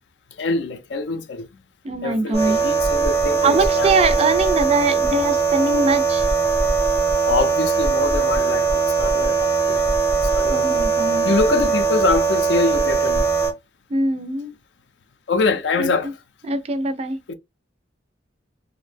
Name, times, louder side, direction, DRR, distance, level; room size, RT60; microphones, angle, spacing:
voice 1, 0.4-1.5 2.0-4.1 7.3-9.9 10.2-10.9 11.2-13.3 15.3-16.2 17.3-17.4, left 3 dB, 65° left, 0.4 m, -24 dB
voice 2, 1.8-2.6 3.4-6.2 10.5-11.3 13.9-14.5 15.8-15.9 16.5-17.2, right 3 dB, 35° right, 0.4 m, -22 dB
sound 1, 2.3-13.5, right 5 dB, 15° left, 0.7 m, -20 dB
2.5 x 2.0 x 3.2 m
head